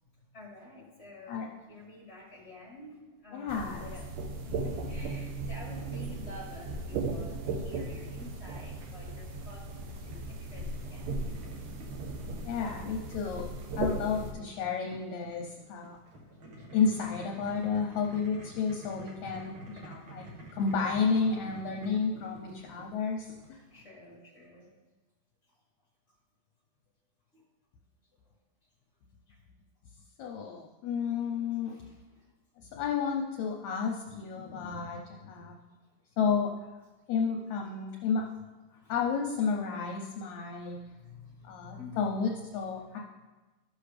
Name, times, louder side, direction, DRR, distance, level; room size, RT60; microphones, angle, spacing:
voice 1, 0.3-11.8 16.6-16.7 20.0-20.1 21.4-22.1 23.6-24.7 27.3-27.4 29.3-29.4 31.6-32.3 38.7-38.9 40.6-42.2 42.6-42.8, left 2 dB, 30° left, -5 dB, 1.5 m, -50 dB
voice 2, 3.3-3.9 12.4-13.5 13.8-16.0 16.7-20.3 20.5-23.6 30.2-31.8 32.6-35.5 36.2-36.5 37.1-38.2 38.9-40.8 41.4-43.0, left 5 dB, 75° left, 0 dB, 1.9 m, -31 dB
Strange rattling from bathroom vent, 3.5-14.3, right 3 dB, 85° right, 2.5 m, -37 dB
Boiling, 5.7-23.8, equal, 50° right, 1.8 m, -50 dB
13.5 x 6.2 x 3.3 m, 1.2 s
omnidirectional pair, 3.7 m